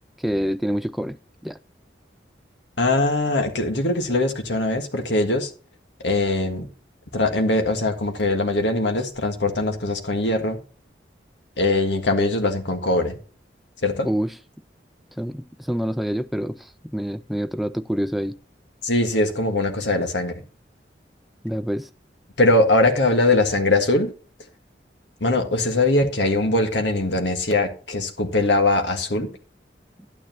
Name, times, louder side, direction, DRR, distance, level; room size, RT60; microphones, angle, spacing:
voice 1, 0.2-1.2 1.4-1.6 14.0-14.3 15.2-18.4 21.4-21.9, equal, ahead, 0.3 m, -26 dB
voice 2, 2.8-5.5 6.0-6.7 7.1-10.6 11.6-13.2 13.8-14.1 18.8-20.3 22.4-24.1 25.2-29.3, left 2 dB, 80° left, 1.7 m, -21 dB
11.5 x 9.3 x 2.9 m
head